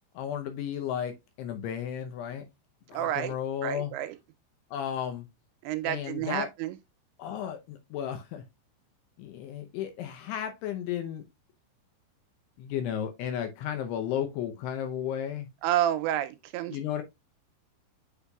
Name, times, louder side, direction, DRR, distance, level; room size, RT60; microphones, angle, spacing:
voice 1, 0.1-2.4 2.9-3.9 4.7-5.3 5.8-6.5 7.2-8.4 9.2-11.2 12.6-15.5 16.7-17.0, left 9 dB, 80° left, 2.5 m, -34 dB
voice 2, 2.9-3.3 3.6-4.2 5.6-6.8 15.6-16.8, right 12 dB, 85° right, 2.6 m, -29 dB
8.1 x 5.7 x 2.3 m
omnidirectional pair, 5.4 m